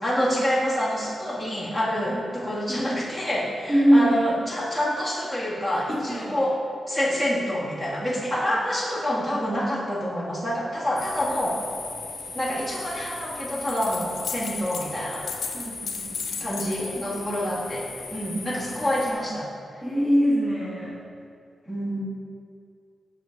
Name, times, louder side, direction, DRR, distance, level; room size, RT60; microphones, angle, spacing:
voice 1, 0.0-6.5 6.9-11.6 12.3-15.2 16.4-19.4 21.7-22.0, equal, 10° right, -7 dB, 1.7 m, -27 dB
voice 2, 3.7-4.2 5.9-6.4 8.4-8.6 15.5-16.7 19.8-21.0, equal, 30° right, -10 dB, 1.6 m, -23 dB
sound 1, 11.0-19.1, left 3 dB, 45° left, 1.5 m, -38 dB
sound 2, 13.5-14.9 15.1-16.9, left 6 dB, 70° left, 0.7 m, -34 dB
8.0 x 5.8 x 3.9 m, 2.3 s
wide cardioid pair, 180°, 0 cm